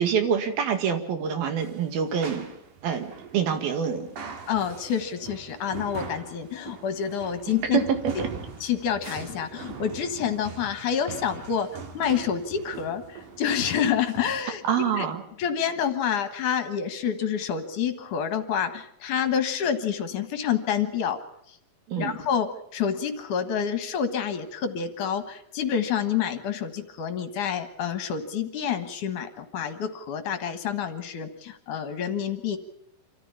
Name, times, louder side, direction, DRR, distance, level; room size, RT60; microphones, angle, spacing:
voice 1, 0.0-2.5 2.8-4.1 7.7-7.8 8.2-8.3 14.6-15.2 21.9-22.2, right 7 dB, 85° right, 7 dB, 3.9 m, -26 dB
sound 1, 1.6-14.4, right 5 dB, 65° right, 3.5 m, -42 dB
voice 2, 4.5-7.8 8.6-11.7 11.9-14.6 15.0-15.1 15.4-21.2 21.5-21.6 22.0-32.6, left 8 dB, 65° left, 9 dB, 2.7 m, -28 dB
26.5 x 14.0 x 8.7 m, 0.74 s
omnidirectional pair, 4.2 m